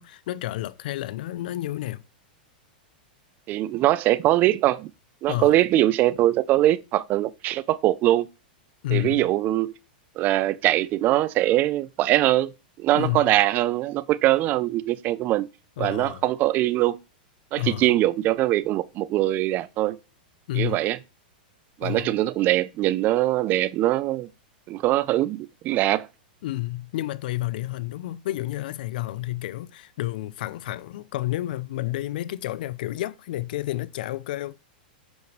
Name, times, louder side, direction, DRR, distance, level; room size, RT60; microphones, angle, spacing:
voice 1, 0.0-2.0 5.3-5.6 8.8-9.3 12.9-13.3 15.8-16.2 17.6-17.9 20.5-20.8 21.8-22.2 26.4-34.5, left 16 dB, 65° left, 0.5 m, -30 dB
voice 2, 3.5-4.9 5.2-8.3 8.9-9.7 10.2-12.5 12.8-15.5 15.8-17.0 17.5-20.0 20.5-21.0 21.8-24.3 24.7-26.1, right 15 dB, 35° right, 0.6 m, -22 dB
8.0 x 7.1 x 3.2 m
hypercardioid pair, 120°, 5 cm